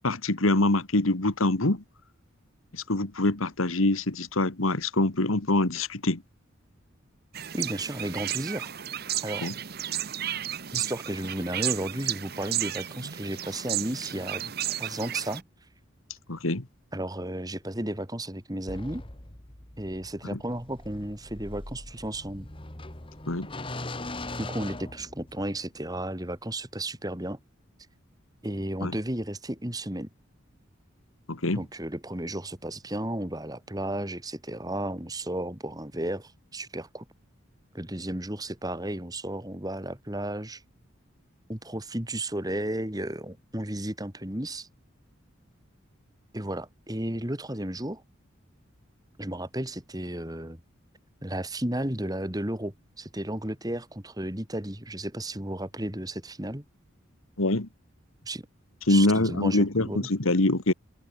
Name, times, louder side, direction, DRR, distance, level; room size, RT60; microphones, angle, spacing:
voice 1, 0.0-1.8 2.7-6.2 9.4-9.5 16.3-16.6 20.2-20.4 23.3-23.5 28.8-29.0 31.3-31.6 57.4-57.7 58.9-60.7, left 2 dB, 85° left, 2.0 m, -24 dB
sound 1, 7.3-15.4, right 11 dB, 50° right, 1.1 m, -33 dB
voice 2, 7.5-8.7 9.2-9.5 10.7-15.4 16.9-19.0 19.8-22.5 24.4-27.4 28.4-30.1 31.5-37.0 37.7-40.6 41.5-44.7 46.3-48.0 49.2-50.6 51.2-56.6 58.2-58.4 58.9-60.1, right 1 dB, 20° right, 2.7 m, -33 dB
sound 2, 18.7-25.6, left 2 dB, 25° left, 1.9 m, -40 dB
head